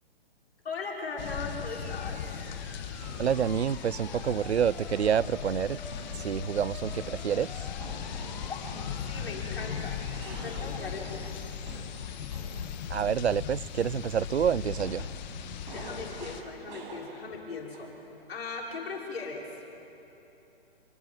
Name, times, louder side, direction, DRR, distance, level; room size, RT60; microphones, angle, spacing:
voice 1, 0.6-2.4 8.4-11.2 15.7-17.9 18.3-19.5, left 4 dB, 70° left, 5.9 m, -39 dB
sound 1, 1.2-16.4, left 8 dB, 45° left, 1.7 m, -38 dB
sound 2, 1.7-13.9, left 1 dB, 5° left, 3.2 m, -49 dB
sound 3, 3.0-3.4 4.0-4.4 5.0-5.2 5.9-6.5 6.9-7.2 7.8-12.7 14.8-17.4 17.7-18.1, right 3 dB, 45° right, 7.6 m, -47 dB
voice 2, 3.2-5.8 6.1-7.5 12.9-15.1, right 8 dB, 85° right, 0.6 m, -28 dB
27.0 x 24.0 x 9.1 m
hypercardioid pair, 130°, 32 cm